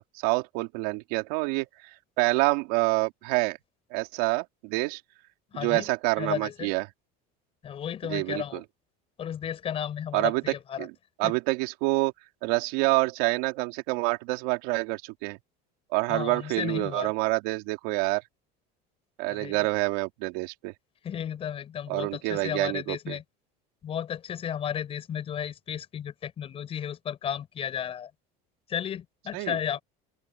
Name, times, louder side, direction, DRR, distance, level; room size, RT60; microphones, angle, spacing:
voice 1, 0.0-3.6 3.9-5.0 5.5-6.9 8.0-8.6 10.1-10.9 11.2-12.1 12.4-15.4 15.9-18.2 19.2-20.7 21.9-23.2 29.3-29.8, right 25 dB, 70° right, 3.3 m, -27 dB
voice 2, 5.5-5.8 6.2-6.7 7.6-8.6 9.2-10.9 11.2-11.3 16.1-17.1 19.3-19.6 21.0-23.2 23.8-28.1 28.7-29.8, left 9 dB, 25° left, 6.3 m, -33 dB
open air
cardioid pair, 170°, 21 cm